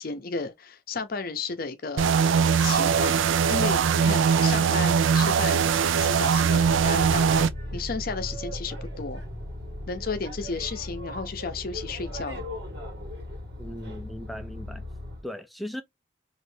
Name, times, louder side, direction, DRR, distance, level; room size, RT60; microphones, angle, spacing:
voice 1, 0.0-2.2 2.6-3.2 3.5-5.6 5.9-9.2 9.9-12.5, left 4 dB, 50° left, 0.6 m, -33 dB
sound 1, 2.0-7.5, right 6 dB, 70° right, 0.3 m, -21 dB
Boat Water vehicle, 6.4-15.2, left 1 dB, 55° right, 1.3 m, -37 dB
voice 2, 13.6-14.9 15.2-15.8, left 1 dB, ahead, 0.4 m, -37 dB
3.2 x 2.5 x 3.2 m
head